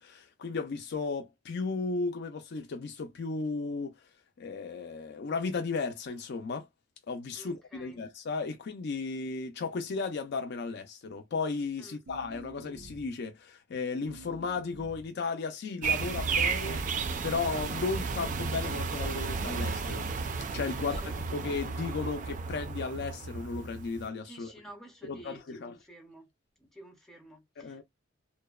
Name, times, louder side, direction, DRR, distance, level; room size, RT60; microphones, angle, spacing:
voice 1, 0.0-4.0 4.4-6.7 7.1-16.8 17.2-20.1 20.5-24.5 25.1-25.7 27.6-27.8, left 4 dB, 55° left, 0.4 m, -35 dB
voice 2, 7.3-8.0 11.8-12.0 20.8-21.5 24.2-26.3 26.6-27.8, right 1 dB, ahead, 0.6 m, -52 dB
sound 1, 12.1-13.2 14.0-15.1 16.0-17.1 18.0-18.6 19.3-19.9, right 2 dB, 85° right, 0.6 m, -49 dB
sound 2, 15.8-24.1, right 5 dB, 40° right, 0.3 m, -33 dB
2.6 x 2.0 x 2.3 m
head